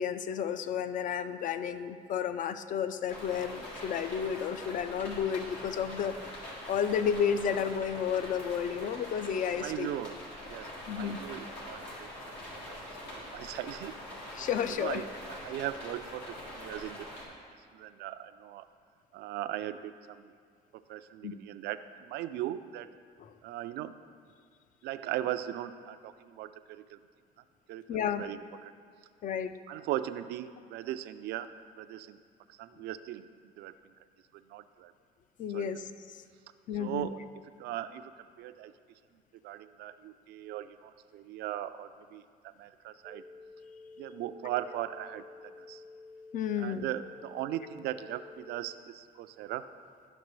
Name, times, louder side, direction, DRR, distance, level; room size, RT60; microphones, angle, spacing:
voice 1, 0.0-6.2 6.7-9.9 10.9-11.2 14.4-15.0 21.2-21.4 23.2-23.3 27.9-28.2 29.2-29.6 35.4-36.2 36.7-37.1 46.3-46.9, left 8 dB, 50° left, 11 dB, 0.4 m, -32 dB
sound 1, 3.1-17.2, left 1 dB, 85° left, 1.9 m, -44 dB
voice 2, 9.5-10.2 10.5-12.7 13.1-13.9 14.5-17.2 17.7-18.7 19.1-20.3 20.9-22.9 23.4-24.0 24.8-27.0 27.7-28.7 29.7-31.5 31.8-32.2 32.5-33.3 33.6-33.9 34.5-34.9 35.5-35.7 36.7-37.2 37.6-38.7 39.4-43.2 44.0-45.8 46.6-49.7, right 13 dB, 75° right, 12 dB, 0.4 m, -39 dB
sound 2, 43.0-48.7, left 3 dB, 5° right, 0.5 m, -51 dB
11.5 x 5.8 x 3.1 m, 2.1 s
cardioid pair, 110°, 17 cm